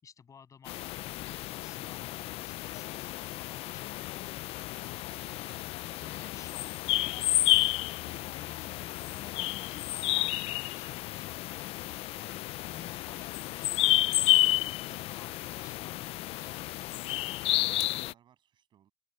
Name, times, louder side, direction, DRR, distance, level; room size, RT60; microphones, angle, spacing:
voice 1, 0.0-5.0 5.3-7.5 8.2-11.3 12.2-16.6, left 6 dB, 25° left, 7.8 m, -54 dB
sound 1, 0.7-18.1, left 17 dB, 50° left, 0.4 m, -31 dB
voice 2, 13.8-14.7 16.9-18.9, right 10 dB, 40° right, 7.0 m, -64 dB
cardioid pair, 135°, 12 cm